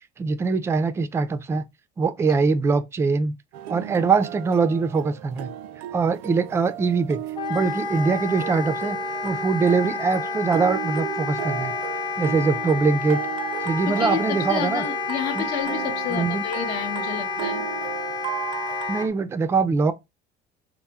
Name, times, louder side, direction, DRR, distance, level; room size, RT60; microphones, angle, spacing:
voice 1, 0.2-1.6 2.0-3.4 3.7-5.5 5.9-7.2 7.5-9.0 9.2-11.7 12.2-13.2 13.6-14.8 15.4-15.5 16.1-16.4 18.9-19.9, right 4 dB, 15° right, 0.3 m, -22 dB
sound 1, 3.5-19.1, right 12 dB, 85° right, 0.5 m, -35 dB
Wind instrument woodwind instrument, 7.4-19.1, left 5 dB, 25° left, 0.6 m, -30 dB
voice 2, 13.9-17.6, left 8 dB, 65° left, 0.9 m, -30 dB
4.2 x 2.0 x 3.5 m
cardioid pair, 150°, 17 cm